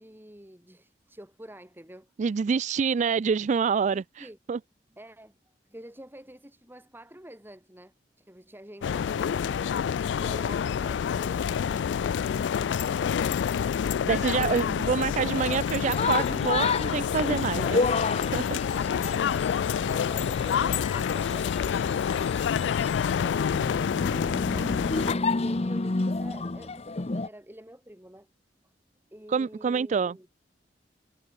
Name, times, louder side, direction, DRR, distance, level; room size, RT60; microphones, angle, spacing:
voice 1, 0.0-2.1 3.9-4.4 4.9-5.3 5.6-9.8 10.2-13.9 18.7-19.4 19.8-22.3 23.1-28.3 29.1-30.3, right 1 dB, 10° right, 4.2 m, -48 dB
voice 2, 2.2-4.6 14.0-18.6 29.3-30.1, right 6 dB, 40° right, 0.3 m, -27 dB
sound 1, 8.8-25.2, left 7 dB, 85° left, 0.3 m, -27 dB
sound 2, 15.2-27.3, left 3 dB, 35° left, 0.8 m, -31 dB
head